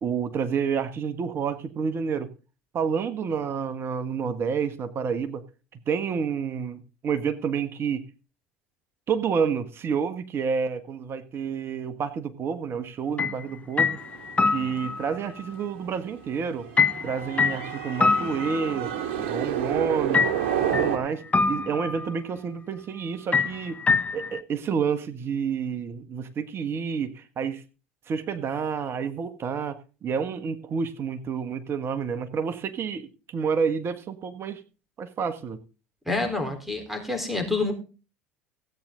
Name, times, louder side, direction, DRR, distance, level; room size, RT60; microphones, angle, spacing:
voice 1, 0.0-2.3 2.7-5.4 5.9-8.0 9.1-14.0 14.5-16.7 17.0-18.9 19.2-20.3 20.7-23.8 24.1-27.6 28.1-34.6 35.0-35.6, right 6 dB, 40° right, 10 dB, 1.3 m, -29 dB
sound 1, 13.2-13.4 13.8-15.2 16.8-19.1 20.1-21.0 21.3-22.1 23.3-24.4, left 4 dB, 20° left, 0.9 m, -25 dB
sound 2, 14.0-21.0, right 9 dB, 65° right, 2.2 m, -30 dB
voice 2, 36.1-37.7, left 3 dB, 5° right, 5 dB, 3.9 m, -27 dB
16.0 x 8.9 x 3.8 m, 0.34 s
hypercardioid pair, 75°, 6 cm